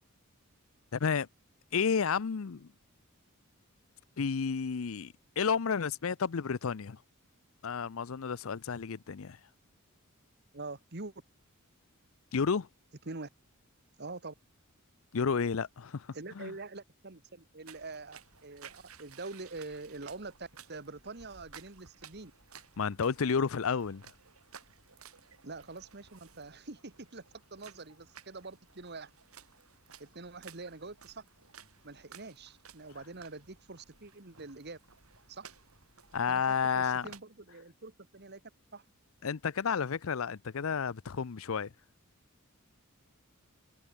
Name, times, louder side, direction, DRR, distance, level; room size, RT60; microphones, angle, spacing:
voice 1, 0.9-1.3 1.7-2.7 4.2-7.0 7.6-9.4 12.3-12.7 15.1-16.1 16.4-16.5 22.8-24.0 36.1-37.1 39.2-41.7, left 6 dB, 65° left, 0.6 m, -31 dB
voice 2, 10.5-11.1 13.0-13.3 14.0-14.3 16.1-22.3 25.4-27.2 27.5-29.1 30.0-31.2 31.8-34.8 35.3-35.5 36.3-38.4 38.7-38.8, right 3 dB, 50° right, 1.7 m, -45 dB
sound 1, 17.7-37.2, right 7 dB, 85° right, 7.1 m, -56 dB
head